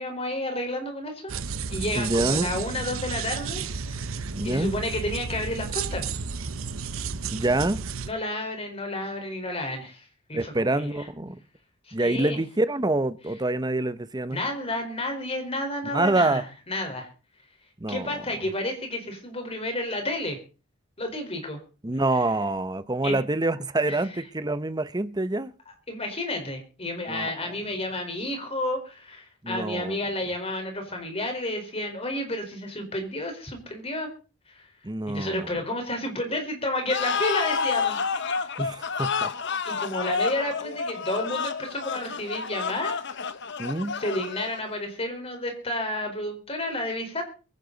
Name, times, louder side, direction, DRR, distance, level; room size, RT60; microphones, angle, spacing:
voice 1, 0.0-1.3 1.7-3.6 3.9-4.1 4.4-6.1 8.1-11.0 11.9-12.4 14.3-17.1 17.9-20.4 21.0-21.6 21.9-22.0 23.0-23.2 23.9-24.0 25.9-34.1 34.5-34.7 35.1-38.0 39.6-43.0 43.9-47.2, left 1 dB, 30° left, 4.5 m, -31 dB
sound 1, 1.3-8.1, right 5 dB, 80° right, 0.9 m, -32 dB
voice 2, 2.0-2.5 4.3-4.7 7.3-7.8 10.3-11.4 11.9-14.4 15.9-16.4 17.8-18.1 21.8-25.5 27.1-27.3 29.4-29.9 34.8-35.5 38.6-39.3 43.6-44.0, right 2 dB, 20° right, 0.8 m, -26 dB
sound 2, 36.9-44.7, left 5 dB, 60° left, 1.1 m, -29 dB
23.0 x 11.0 x 4.0 m
head